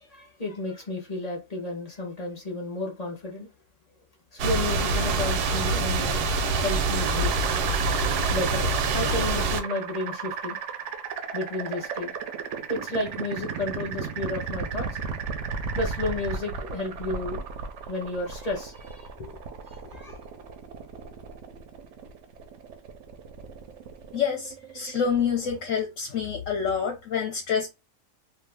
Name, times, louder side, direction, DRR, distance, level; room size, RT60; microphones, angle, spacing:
voice 1, 0.0-3.5 4.3-6.3 6.6-7.3 8.3-10.6 11.3-12.1 12.7-14.9 15.7-17.4 17.9-19.4 19.7-20.2, left 2 dB, 40° left, 0.6 m, -32 dB
sound 1, 4.4-9.6, right 3 dB, 90° right, 1.1 m, -25 dB
sound 2, 7.0-25.8, right 6 dB, 65° right, 0.7 m, -35 dB
voice 2, 24.1-27.7, left 7 dB, 65° left, 0.9 m, -27 dB
2.6 x 2.3 x 3.3 m
omnidirectional pair, 1.6 m